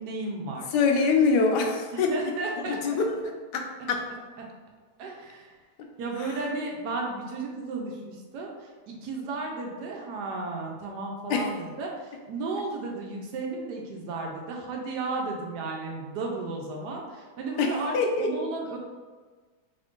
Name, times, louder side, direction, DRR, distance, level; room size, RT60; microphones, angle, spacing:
voice 1, 0.0-0.7 1.9-3.0 4.4-4.5 5.0-5.6 6.0-18.8, right 3 dB, 85° right, -1 dB, 1.3 m, -34 dB
voice 2, 0.7-2.1 2.7-3.0 3.5-4.0 11.3-11.5 17.6-17.7 17.9-18.3, left 4 dB, 85° left, 2 dB, 1.2 m, -24 dB
3.5 x 2.5 x 3.6 m, 1.4 s
omnidirectional pair, 1.7 m